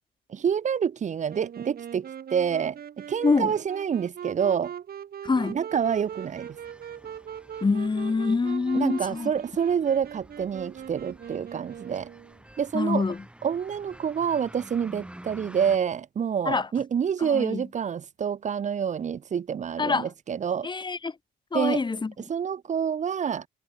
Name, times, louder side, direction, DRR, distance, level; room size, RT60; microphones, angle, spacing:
voice 1, 0.3-2.8 3.1-4.7 5.5-6.6 8.7-12.1 12.6-13.0 13.4-20.7 21.5-21.8 22.2-23.5, right 7 dB, 45° right, 0.8 m, -27 dB
Wind instrument woodwind instrument, 1.3-12.4, right 9 dB, 60° right, 3.0 m, -41 dB
voice 2, 5.2-5.6 7.6-9.3 12.7-13.2 16.5-16.7 17.2-17.6 19.8-20.1 20.6-21.1 21.5-22.1, left 4 dB, 25° left, 1.8 m, -25 dB
sound 1, 5.7-15.8, right 1 dB, 5° right, 4.1 m, -50 dB
cardioid pair, 100°, 18 cm